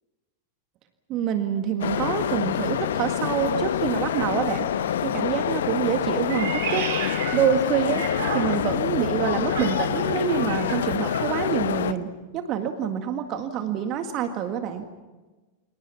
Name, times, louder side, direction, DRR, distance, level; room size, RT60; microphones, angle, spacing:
voice 1, 1.1-4.7 5.0-6.9 7.3-8.0 8.3-14.9, right 8 dB, 35° right, 7 dB, 1.8 m, -26 dB
sound 1, 1.8-11.9, left 9 dB, 60° left, 1.0 m, -26 dB
Meow, 6.2-8.8 9.4-11.4, right 6 dB, 60° right, 5.5 m, -34 dB
29.0 x 26.0 x 5.9 m, 1.2 s
figure-of-eight pair, 90°, 0 cm